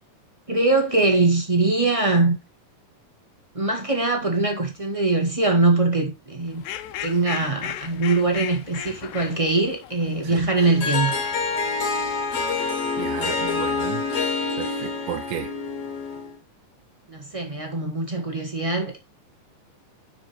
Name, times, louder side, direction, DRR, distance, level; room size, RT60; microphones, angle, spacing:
voice 1, 0.5-2.4 3.5-6.6 7.0-11.1 17.1-19.0, right 3 dB, 20° right, 0.9 m, -22 dB
Fowl, 6.5-14.3, left 11 dB, 80° left, 2.4 m, -39 dB
Harp, 10.6-16.4, left 4 dB, 55° left, 2.4 m, -27 dB
voice 2, 13.0-14.0 14.6-15.5, right 10 dB, 80° right, 2.3 m, -32 dB
7.0 x 6.2 x 4.4 m
omnidirectional pair, 3.8 m